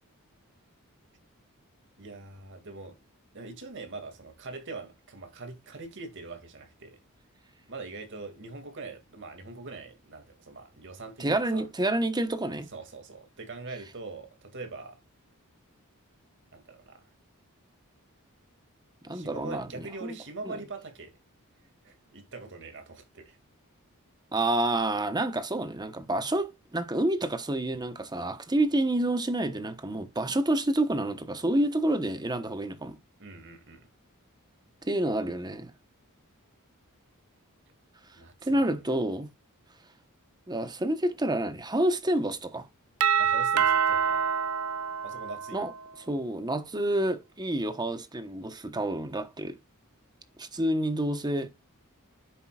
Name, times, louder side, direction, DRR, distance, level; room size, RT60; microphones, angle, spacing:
voice 1, 2.0-3.0 3.3-7.0 7.7-11.7 12.7-15.0 16.5-17.0 19.1-21.2 21.8-23.4 33.2-33.9 38.1-38.7 43.2-44.4 45.0-45.7, right 3 dB, 60° right, 2.3 m, -43 dB
voice 2, 11.2-12.7 19.0-19.7 20.0-20.2 20.4-20.6 24.3-33.0 34.8-35.7 38.4-39.3 40.5-42.7 45.5-45.7 46.1-49.6 50.4-51.5, right 1 dB, 20° right, 1.1 m, -28 dB
Doorbell, 43.0-45.8, right 7 dB, 85° right, 0.5 m, -26 dB
10.5 x 7.8 x 2.4 m
head